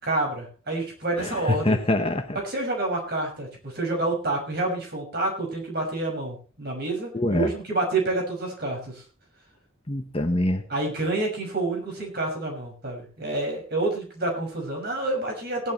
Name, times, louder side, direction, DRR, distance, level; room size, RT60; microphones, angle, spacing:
voice 1, 0.0-1.8 2.4-9.0 10.7-15.7, right 2 dB, 50° right, 1 dB, 6.0 m, -28 dB
voice 2, 1.2-2.4 7.1-7.5 9.9-10.6, left 1 dB, 25° left, 5 dB, 1.2 m, -25 dB
19.5 x 11.5 x 3.2 m, 0.37 s
head